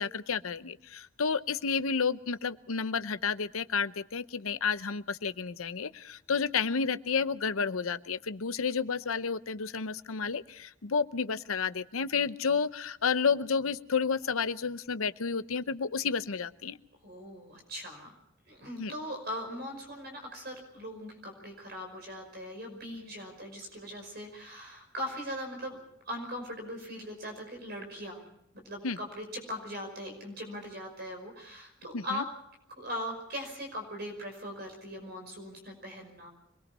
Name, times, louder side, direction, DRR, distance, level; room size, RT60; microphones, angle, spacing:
voice 1, 0.0-16.8 18.8-18.9 28.8-29.0 31.9-32.2, left 5 dB, 90° left, 13 dB, 0.8 m, -31 dB
voice 2, 17.0-18.1 18.5-25.8 26.0-28.2 28.6-32.3 32.7-36.3, equal, 50° right, 4 dB, 5.4 m, -40 dB
26.0 x 21.0 x 5.5 m, 0.74 s
head